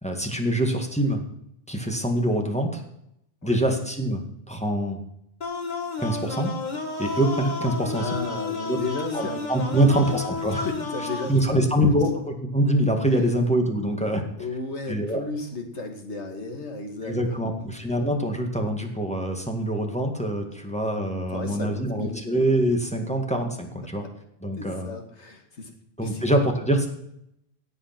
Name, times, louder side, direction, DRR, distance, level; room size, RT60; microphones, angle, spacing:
voice 1, 0.0-1.2 1.7-2.8 3.4-5.0 6.0-6.5 7.0-8.1 8.7-8.8 9.1-10.7 11.3-14.2 14.9-15.2 17.0-24.0 24.4-24.9 26.0-26.9, right 1 dB, 5° left, 2 dB, 1.9 m, -24 dB
sound 1, 5.4-11.4, left 4 dB, 40° left, 1.6 m, -32 dB
voice 2, 8.0-10.0 10.6-11.6 14.4-17.6 21.3-22.2 24.6-25.7 26.0-26.2, left 3 dB, 80° left, 4 dB, 2.3 m, -34 dB
16.5 x 8.1 x 6.0 m, 0.78 s
omnidirectional pair, 1.2 m